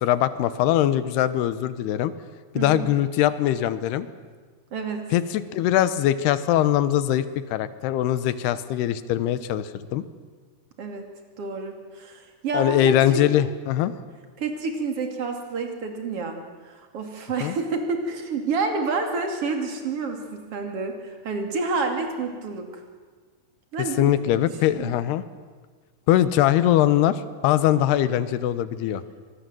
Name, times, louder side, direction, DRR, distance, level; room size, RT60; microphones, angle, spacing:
voice 1, 0.0-2.1 2.6-4.1 5.1-7.3 7.5-10.0 12.5-13.9 17.4-17.6 24.0-25.2 26.1-29.0, left 12 dB, 80° left, 14 dB, 2.9 m, -22 dB
voice 2, 2.5-2.9 4.7-5.0 10.8-11.1 11.4-13.2 14.4-16.4 16.6-22.8 23.7-24.5 24.8-24.9, right 4 dB, 40° right, 4 dB, 3.1 m, -29 dB
25.0 x 20.5 x 7.7 m, 1.5 s
omnidirectional pair, 4.8 m